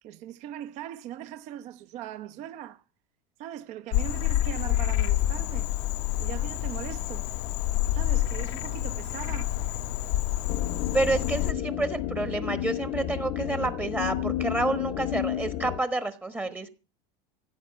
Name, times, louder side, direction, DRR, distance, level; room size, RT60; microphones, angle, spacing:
voice 1, 0.0-2.8 3.4-5.7 6.2-7.3 7.9-9.6, right 11 dB, 45° right, 1.0 m, -40 dB
Frog, 3.9-11.5, left 14 dB, 70° left, 1.0 m, -28 dB
sound 1, 10.5-15.8, left 12 dB, 45° left, 0.9 m, -31 dB
voice 2, 10.9-16.7, right 2 dB, 10° right, 1.2 m, -29 dB
16.0 x 7.9 x 8.7 m
cardioid pair, 160°, 16 cm